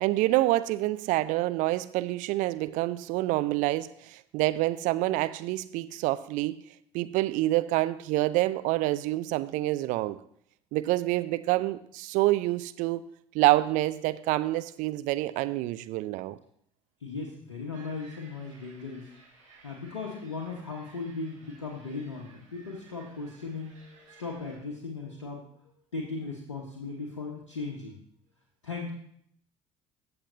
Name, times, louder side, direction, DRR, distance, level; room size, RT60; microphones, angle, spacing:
voice 1, 0.0-6.6 6.9-10.2 10.7-13.0 13.3-16.4, right 17 dB, 55° right, 14 dB, 0.5 m, -27 dB
voice 2, 17.0-19.1 19.6-28.0 28.6-28.9, left 4 dB, 80° left, -1 dB, 1.1 m, -37 dB
sound 1, 17.7-24.6, right 3 dB, 85° right, 2.3 m, -57 dB
14.5 x 7.8 x 2.6 m, 0.68 s
figure-of-eight pair, 55°, 15 cm